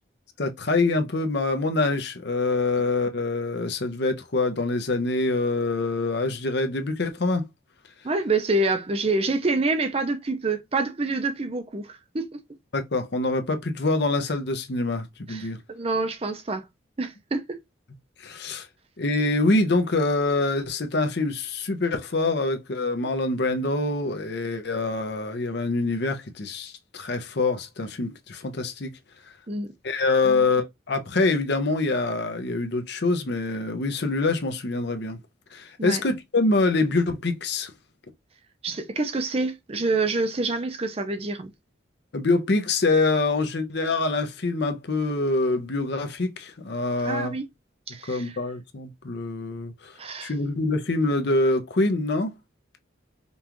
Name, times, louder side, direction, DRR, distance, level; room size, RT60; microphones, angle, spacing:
voice 1, 0.4-7.4 12.7-15.6 18.2-18.7 19.0-28.9 29.8-35.2 35.5-37.7 42.1-47.3 48.1-49.9 50.2-52.3, left 3 dB, 55° left, 0.7 m, -25 dB
voice 2, 8.0-12.3 15.3-16.7 17.0-17.6 29.5-29.7 30.2-30.5 35.8-36.0 38.6-41.5 47.0-47.5 47.9-48.4 50.0-50.3, right 3 dB, 30° right, 0.6 m, -27 dB
5.3 x 2.4 x 3.0 m
head